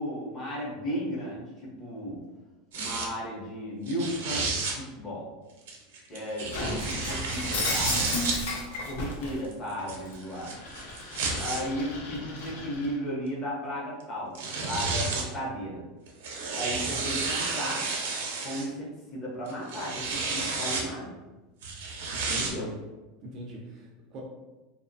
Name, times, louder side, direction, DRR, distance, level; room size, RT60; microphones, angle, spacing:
voice 1, 0.0-2.2 2.7-5.3 6.1-8.1 8.8-10.6 11.4-15.8 16.6-17.9 18.4-21.2 22.4-22.7, equal, 20° left, -5 dB, 0.6 m, -35 dB
sound 1, 2.7-3.1 3.9-4.8 5.7-8.4 9.3-11.6 12.5-12.6 14.0-14.1 14.4-15.3 16.1-18.7 19.5-20.9 21.6-22.5, right 4 dB, 90° right, 0.6 m, -31 dB
Shatter, 6.5-9.4 9.8-12.9, left 2 dB, 80° left, 0.6 m, -34 dB
voice 2, 22.3-22.8 23.2-24.2, equal, 30° right, -1 dB, 0.3 m, -41 dB
2.6 x 2.0 x 2.6 m, 1.1 s
supercardioid pair, 175°, 0 cm